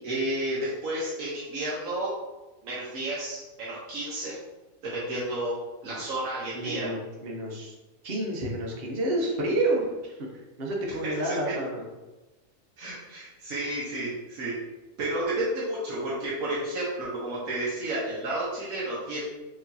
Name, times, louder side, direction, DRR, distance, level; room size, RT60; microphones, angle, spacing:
voice 1, 0.0-2.1 2.6-4.3 4.8-5.5 5.8-6.9 11.0-11.3 12.8-14.5 15.0-19.2, right 1 dB, 85° right, -7 dB, 1.4 m, -31 dB
voice 2, 6.5-7.7 8.0-11.9, right 1 dB, 50° right, -1 dB, 1.0 m, -29 dB
4.8 x 3.2 x 2.7 m, 1.1 s
omnidirectional pair, 1.4 m